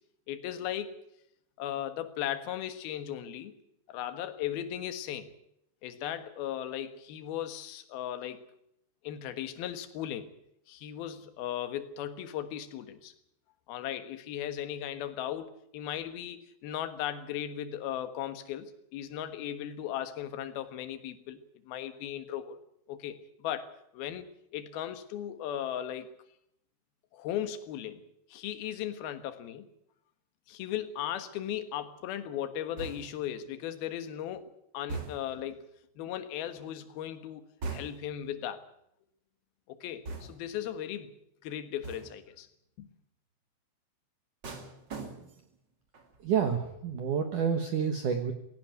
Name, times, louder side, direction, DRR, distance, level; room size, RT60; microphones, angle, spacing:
voice 1, 0.3-1.0 1.6-3.5 3.9-5.3 5.8-8.4 9.0-10.3 10.7-13.1 13.7-22.6 22.9-24.3 24.5-26.1 27.1-28.0 28.3-29.7 30.5-35.6 36.0-38.6 39.7-41.1 41.4-42.5 42.8-42.9, left 11 dB, 65° left, 9 dB, 2.9 m, -37 dB
sound 1, 32.8-33.3 34.9-35.5 37.6-38.2 40.1-40.6 41.8-42.3 44.4-45.6 45.9-46.3, right 3 dB, 35° right, 1.7 m, -41 dB
voice 2, 46.2-48.3, right 7 dB, 70° right, 7 dB, 1.9 m, -29 dB
17.0 x 17.0 x 9.4 m, 0.75 s
omnidirectional pair, 5.6 m